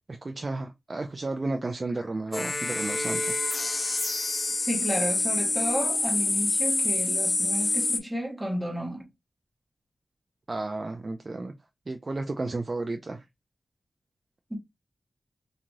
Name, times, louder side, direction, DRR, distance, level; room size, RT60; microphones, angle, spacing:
voice 1, 0.1-3.4 10.5-11.5 11.9-13.2, right 2 dB, 40° right, 0.3 m, -32 dB
sound 1, 2.0-2.1 2.3-8.0, left 2 dB, 40° left, 0.3 m, -27 dB
voice 2, 4.6-9.1 14.5-14.6, equal, 10° right, 0.8 m, -32 dB
2.9 x 2.4 x 2.5 m
wide cardioid pair, 85°, 0 cm